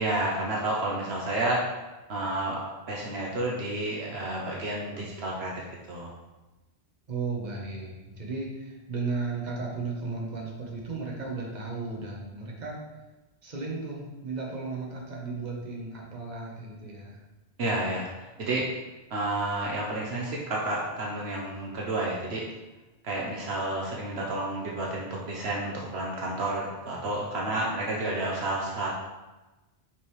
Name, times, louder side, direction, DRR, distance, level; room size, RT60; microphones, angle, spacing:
voice 1, 0.0-1.7 2.1-6.1 17.6-18.7 19.1-22.5 23.0-28.9, right 2 dB, 70° right, -3 dB, 1.2 m, -30 dB
voice 2, 7.1-12.8 13.4-17.2, right 3 dB, 40° right, -2 dB, 1.3 m, -35 dB
5.7 x 5.3 x 3.2 m, 1.1 s
omnidirectional pair, 1.1 m